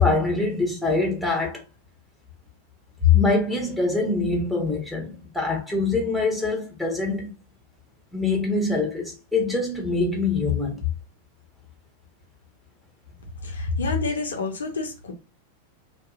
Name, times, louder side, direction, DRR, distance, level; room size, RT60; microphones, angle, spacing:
voice 1, 0.0-1.6 3.0-7.3 8.1-10.8, left 4 dB, ahead, 1.1 m, -23 dB
voice 2, 13.4-15.1, left 3 dB, 65° left, 0.6 m, -27 dB
2.7 x 2.7 x 2.4 m
figure-of-eight pair, 90°, 0 cm